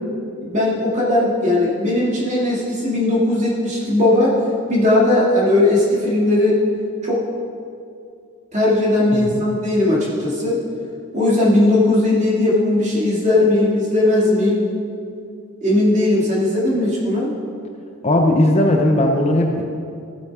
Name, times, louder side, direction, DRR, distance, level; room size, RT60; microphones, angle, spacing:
voice 1, 0.4-4.4 4.7-6.6 7.0-7.2 8.5-10.6 11.1-14.7 15.6-17.3, left 1 dB, 30° right, -5 dB, 2.3 m, -18 dB
voice 2, 9.1-9.4 18.0-19.6, left 1 dB, 30° left, 2 dB, 0.7 m, -17 dB
14.0 x 8.4 x 3.6 m, 2.4 s
head